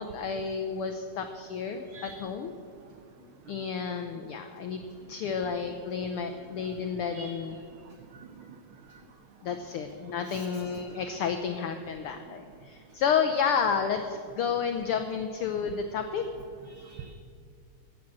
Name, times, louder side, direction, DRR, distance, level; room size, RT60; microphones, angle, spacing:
voice 1, 0.0-2.5 3.5-7.6 9.4-16.2, left 6 dB, 85° left, 7 dB, 1.2 m, -31 dB
voice 2, 8.1-8.6 10.3-10.4 10.9-11.0 16.7-17.1, right 5 dB, 85° right, 7 dB, 1.1 m, -46 dB
15.5 x 7.7 x 7.3 m, 2.2 s
omnidirectional pair, 3.3 m